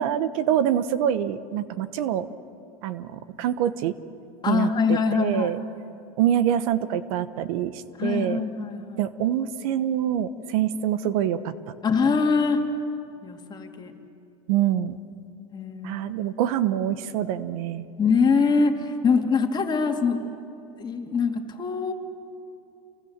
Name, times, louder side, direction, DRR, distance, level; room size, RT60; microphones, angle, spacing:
voice 1, 0.0-2.3 2.8-3.9 4.5-5.6 6.2-8.4 9.0-11.7 14.5-15.0 15.8-17.9, right 10 dB, 70° right, 14 dB, 1.1 m, -25 dB
voice 2, 4.4-5.5 8.0-9.0 11.8-12.6 13.2-13.9 15.5-16.1 18.0-20.2 20.8-21.9, left 5 dB, 25° left, 3 dB, 2.6 m, -23 dB
29.0 x 23.5 x 7.4 m, 2.7 s
supercardioid pair, 120°, 19 cm